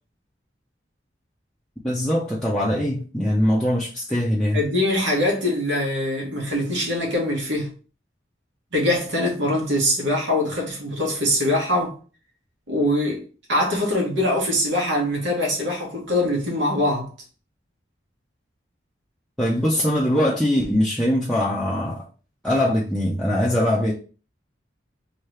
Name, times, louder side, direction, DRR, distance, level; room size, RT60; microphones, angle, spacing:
voice 1, 1.8-4.6 19.4-22.0 22.4-23.9, left 1 dB, 5° left, 0.5 m, -22 dB
voice 2, 4.5-7.7 8.7-12.0 12.7-17.1, left 1 dB, 80° right, 1.3 m, -23 dB
3.1 x 2.7 x 3.2 m
head